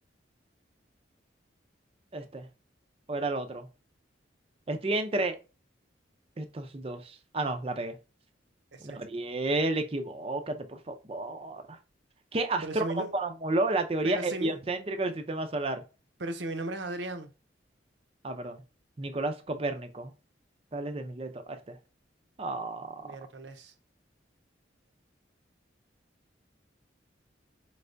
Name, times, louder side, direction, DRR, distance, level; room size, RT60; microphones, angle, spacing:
voice 1, 2.1-2.5 3.1-3.7 4.7-5.4 6.4-8.0 8.8-11.8 12.3-15.8 18.2-18.6 19.0-20.1 20.7-21.8 22.4-23.2, right 2 dB, 30° right, 0.5 m, -31 dB
voice 2, 12.6-13.1 14.0-14.6 16.2-17.3 23.0-23.7, right 2 dB, 70° right, 0.7 m, -36 dB
4.6 x 3.3 x 2.5 m
head